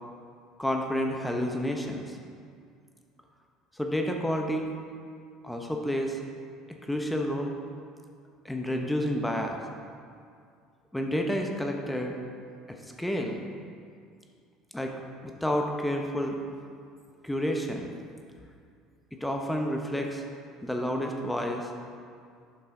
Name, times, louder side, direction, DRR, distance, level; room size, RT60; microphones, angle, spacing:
voice 1, 0.6-2.2 3.7-4.7 5.4-6.2 6.8-7.5 8.4-9.6 10.9-12.2 13.0-13.4 14.7-14.9 15.2-16.4 17.2-17.9 19.2-20.2 20.6-21.7, equal, 5° left, 2 dB, 0.8 m, -30 dB
7.8 x 5.6 x 3.8 m, 2.3 s
supercardioid pair, 85°, 0 cm